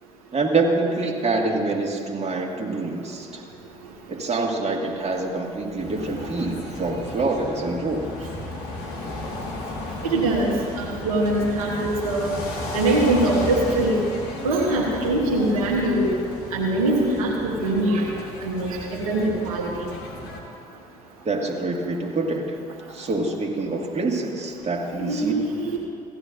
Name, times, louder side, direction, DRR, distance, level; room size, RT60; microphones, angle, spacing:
voice 1, 0.3-3.4 4.1-8.1 21.3-22.6 22.9-25.3, right 3 dB, 35° right, 0 dB, 1.8 m, -26 dB
sound 1, 5.8-20.4, left 2 dB, 70° left, 1.7 m, -34 dB
voice 2, 6.0-6.3 8.2-8.3 10.0-12.3 12.7-14.0 14.4-16.1 16.5-18.1 18.4-19.9 24.9-25.8, right 2 dB, 90° right, -3 dB, 1.3 m, -23 dB
16.0 x 11.5 x 2.6 m, 2.5 s
hypercardioid pair, 50°, 18 cm